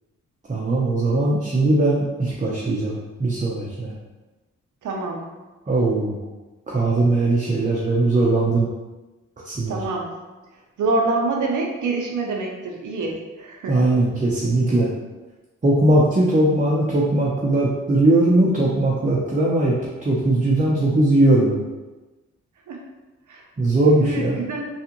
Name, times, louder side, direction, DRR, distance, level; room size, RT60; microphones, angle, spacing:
voice 1, 0.5-3.9 5.7-6.2 6.7-8.7 9.4-9.8 13.7-14.9 15.6-19.8 20.0-21.6 23.6-24.4, right 2 dB, 25° right, -5 dB, 0.7 m, -19 dB
voice 2, 4.8-5.2 9.7-10.1 10.8-13.8 22.7-22.8 23.3-23.4 24.0-24.7, right 3 dB, 70° right, 0 dB, 0.7 m, -26 dB
3.5 x 2.4 x 2.9 m, 1.2 s
supercardioid pair, 50°, 31 cm